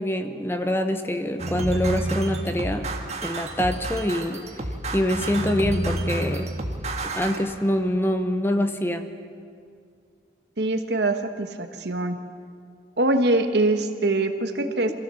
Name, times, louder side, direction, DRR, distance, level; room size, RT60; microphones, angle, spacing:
voice 1, 0.0-2.9 3.2-4.4 4.9-6.5 7.0-9.1, left 1 dB, 15° left, 7 dB, 0.9 m, -25 dB
sound 1, 1.4-7.4, right 1 dB, 40° right, 1.7 m, -29 dB
voice 2, 10.6-12.2 13.0-14.9, right 2 dB, 70° right, 7 dB, 1.3 m, -23 dB
24.5 x 16.0 x 7.0 m, 2.3 s
head